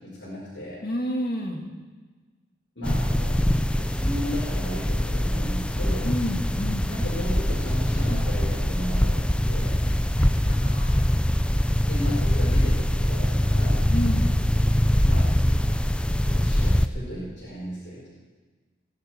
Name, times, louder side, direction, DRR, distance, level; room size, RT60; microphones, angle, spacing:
voice 1, 0.0-0.8 2.8-3.4 3.8-6.1 6.8-9.8 11.8-13.9 15.0-15.4 16.1-18.1, equal, 85° left, -9 dB, 5.7 m, -35 dB
voice 2, 0.8-1.7 6.0-6.9 9.8-11.0 13.9-14.3, equal, 50° left, 0 dB, 2.6 m, -30 dB
sound 1, 2.8-16.9, equal, 5° left, 0.4 m, -23 dB
20.5 x 11.5 x 4.7 m, 1.4 s
head